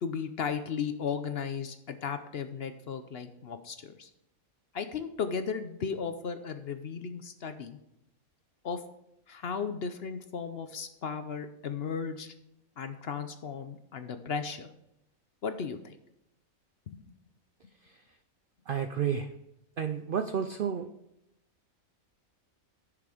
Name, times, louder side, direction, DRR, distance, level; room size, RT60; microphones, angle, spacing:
voice 1, 0.0-4.1 4.7-7.8 8.6-8.8 9.3-12.3 12.8-14.7 15.4-16.0 16.9-17.0, left 6 dB, 55° left, 9 dB, 0.8 m, -35 dB
voice 2, 18.7-19.3 19.8-20.9, right 7 dB, 65° right, 8 dB, 0.5 m, -30 dB
10.5 x 6.8 x 5.0 m, 0.82 s
omnidirectional pair, 1.5 m